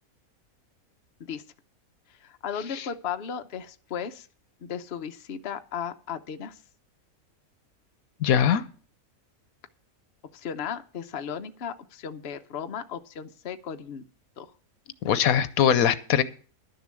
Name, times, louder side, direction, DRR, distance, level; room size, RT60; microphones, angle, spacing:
voice 1, 2.2-4.3 4.6-6.6 10.3-14.1 14.4-14.5, left 7 dB, 50° left, 7 dB, 1.0 m, -35 dB
voice 2, 8.2-8.6 15.0-16.2, left 9 dB, 80° left, 14 dB, 1.2 m, -21 dB
11.5 x 6.9 x 7.5 m, 0.40 s
omnidirectional pair, 1.5 m